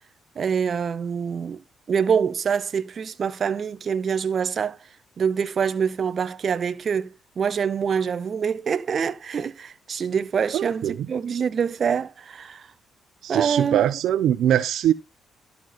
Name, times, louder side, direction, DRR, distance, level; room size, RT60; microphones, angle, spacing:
voice 1, 0.3-1.6 1.9-4.8 5.2-12.7 13.3-13.9, right 6 dB, 50° right, 1.1 m, -25 dB
voice 2, 10.5-11.0 13.2-14.9, right 11 dB, 75° right, 0.7 m, -22 dB
12.0 x 7.0 x 4.3 m
cardioid pair, 90°, 0 cm